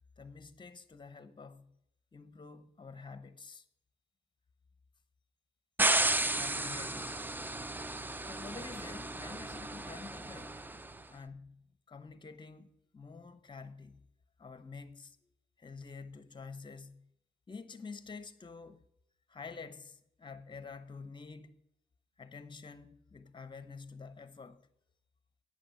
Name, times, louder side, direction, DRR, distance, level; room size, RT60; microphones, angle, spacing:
voice 1, 0.2-1.8 2.1-3.7 6.3-7.2 8.3-10.6 11.1-14.1 14.4-15.3 15.6-17.1 17.5-18.8 19.3-21.5 22.2-24.6, left 4 dB, 25° left, 0.8 m, -48 dB
sound 1, 5.8-10.9, right 2 dB, 10° right, 0.4 m, -33 dB
8.6 x 6.6 x 7.5 m
cardioid pair, 90°, 20 cm